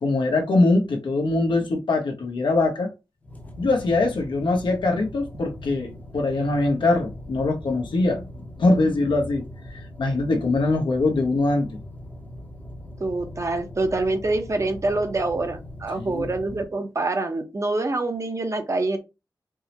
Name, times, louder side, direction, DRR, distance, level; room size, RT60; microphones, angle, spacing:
voice 1, 0.0-2.9 3.6-8.3 8.6-9.4 9.7-11.8 16.0-16.3, left 2 dB, 85° left, 1.0 m, -22 dB
sound 1, 3.2-16.6, left 1 dB, 20° left, 0.7 m, -40 dB
voice 2, 13.0-19.0, right 2 dB, 40° right, 0.7 m, -26 dB
4.6 x 2.1 x 2.8 m
wide cardioid pair, 95°, 8 cm